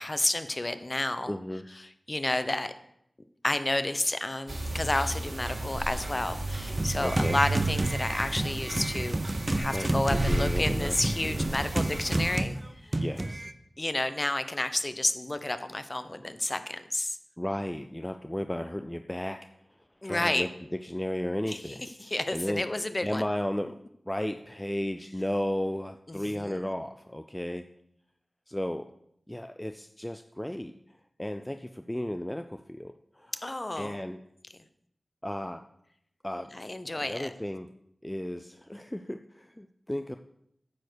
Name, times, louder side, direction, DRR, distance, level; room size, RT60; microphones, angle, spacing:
voice 1, 0.0-1.3 2.1-2.7 3.4-9.2 9.5-12.6 13.8-17.2 20.0-20.5 21.5-23.2 26.1-26.6 33.4-34.0 36.5-37.3, left 1 dB, 30° left, 10 dB, 0.9 m, -31 dB
voice 2, 1.3-1.6 7.0-7.4 9.7-10.9 11.2-11.5 13.0-13.5 17.4-19.4 20.0-22.6 23.0-23.8 24.1-27.7 28.5-28.9 29.3-30.7 31.2-33.3 33.8-34.2 35.2-35.6 36.2-36.5 36.9-37.7 38.0-40.2, left 1 dB, 15° left, 7 dB, 0.5 m, -34 dB
sound 1, 4.5-12.4, right 2 dB, 50° right, 2.2 m, -33 dB
sound 2, 6.8-13.5, right 1 dB, 35° right, 0.7 m, -31 dB
9.6 x 7.0 x 6.3 m, 0.75 s
wide cardioid pair, 50°, 0 cm